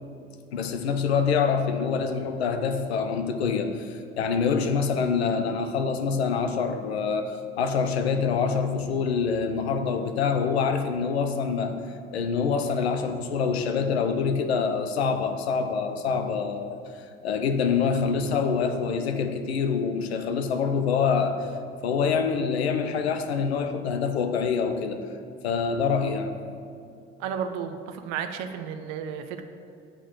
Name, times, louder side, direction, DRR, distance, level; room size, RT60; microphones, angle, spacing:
voice 1, 0.5-11.8 12.1-16.8 17.2-21.5 21.8-25.0 25.4-26.4, left 5 dB, 85° left, 7 dB, 0.6 m, -26 dB
voice 2, 27.2-29.4, right 7 dB, 60° right, 7 dB, 0.6 m, -33 dB
8.3 x 3.8 x 6.6 m, 2.5 s
hypercardioid pair, 55°, 31 cm